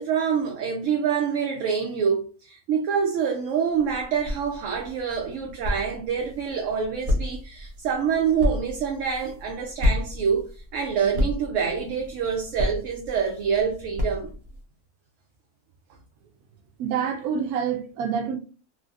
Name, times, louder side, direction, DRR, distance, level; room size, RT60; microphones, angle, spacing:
voice 1, 0.0-14.3, right 7 dB, 70° right, 0.8 m, -26 dB
sound 1, 3.7-14.6, left 1 dB, 35° right, 0.7 m, -31 dB
voice 2, 16.8-18.4, right 7 dB, 90° right, 1.1 m, -27 dB
3.2 x 2.5 x 2.4 m
omnidirectional pair, 1.5 m